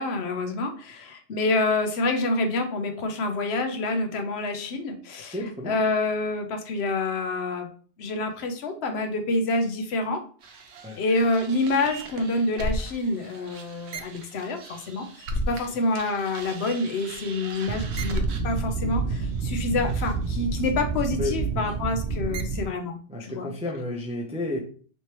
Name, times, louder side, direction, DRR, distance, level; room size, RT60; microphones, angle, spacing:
voice 1, 0.0-5.3 5.7-7.7 8.0-10.2 11.0-23.5, left 2 dB, 70° left, 6 dB, 0.9 m, -27 dB
voice 2, 5.3-5.8 10.8-11.0 15.5-15.7 21.2-21.7 23.1-24.6, left 2 dB, 10° right, -1 dB, 0.4 m, -32 dB
sound 1, 10.4-15.7 15.9-22.7, right 3 dB, 75° right, 0.9 m, -31 dB
3.2 x 3.1 x 2.9 m, 0.44 s
omnidirectional pair, 1.1 m